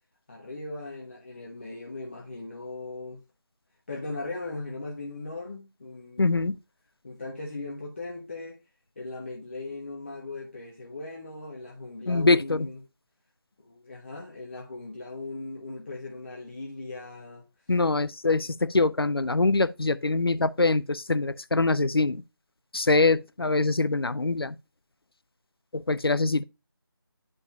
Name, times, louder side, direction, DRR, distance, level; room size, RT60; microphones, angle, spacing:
voice 1, 0.3-3.2 3.9-6.3 7.0-8.6 9.0-12.8 13.6-17.4, left 2 dB, 30° left, 1.1 m, -38 dB
voice 2, 6.2-6.6 12.1-12.7 17.7-22.2 22.7-24.6 25.7-26.4, left 3 dB, 75° left, 0.6 m, -24 dB
10.5 x 5.4 x 2.4 m
figure-of-eight pair, 165°, 13 cm